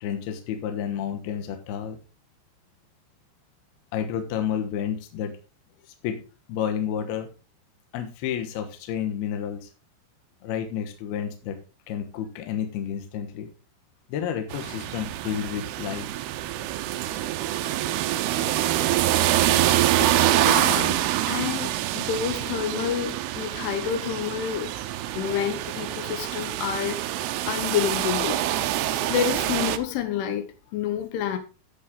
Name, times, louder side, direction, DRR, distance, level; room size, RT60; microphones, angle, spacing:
voice 1, 0.0-2.0 3.9-5.3 6.0-6.2 6.5-7.3 7.9-9.7 10.4-11.6 11.9-13.5 14.1-16.1, left 9 dB, 65° left, 2.8 m, -30 dB
sound 1, 14.5-29.8, right 13 dB, 85° right, 2.3 m, -25 dB
voice 2, 20.0-24.7 25.1-31.4, left 8 dB, 80° left, 3.6 m, -29 dB
11.5 x 7.1 x 3.8 m
omnidirectional pair, 5.5 m